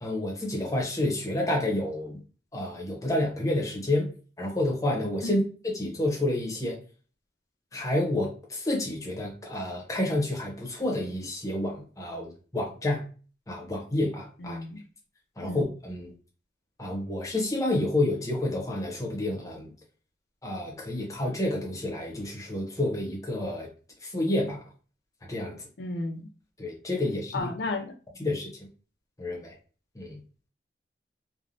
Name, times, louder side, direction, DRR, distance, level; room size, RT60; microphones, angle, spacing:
voice 1, 0.0-2.2 2.5-4.1 4.4-6.8 7.7-13.0 13.5-14.6 15.4-16.1 16.8-19.7 20.4-23.7 24.0-24.6 25.3-25.6 26.6-27.5 28.2-28.5 29.2-29.6 29.9-30.2, left 1 dB, 20° left, -1 dB, 0.8 m, -29 dB
voice 2, 14.4-14.8 15.4-15.6 25.8-26.3 27.3-27.9, left 2 dB, 70° left, 6 dB, 0.5 m, -33 dB
3.1 x 2.2 x 2.6 m, 0.38 s
head